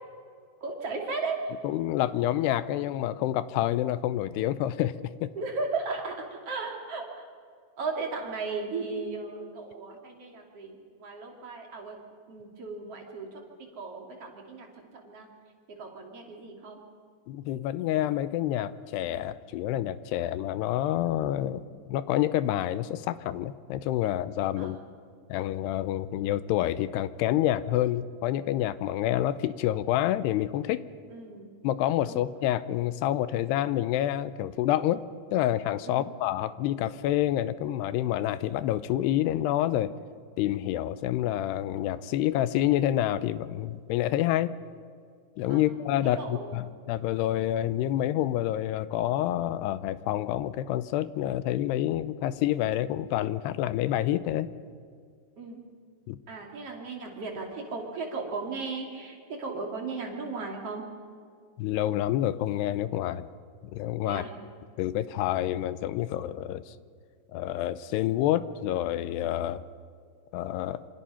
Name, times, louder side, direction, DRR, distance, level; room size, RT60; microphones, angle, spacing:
voice 1, 0.6-1.4 5.3-7.3 7.8-12.0 12.3-13.4 13.8-14.7 15.0-15.3 15.7-16.8 21.4-21.6 24.6-24.7 31.1-31.5 32.0-32.2 35.8-36.1 45.5-45.7 46.2-46.6 55.4-55.6 56.3-60.8 64.0-64.3, right 4 dB, 40° right, 1 dB, 3.3 m, -36 dB
voice 2, 1.6-5.3 17.3-21.6 21.9-24.8 25.3-30.8 31.6-35.0 35.3-39.9 40.4-44.5 45.4-54.5 56.1-56.2 61.6-63.3 63.7-64.2 64.8-66.7 67.3-69.6 70.3-70.9, left 13 dB, 80° left, 14 dB, 2.6 m, -28 dB
27.0 x 26.5 x 5.7 m, 2.1 s
omnidirectional pair, 5.0 m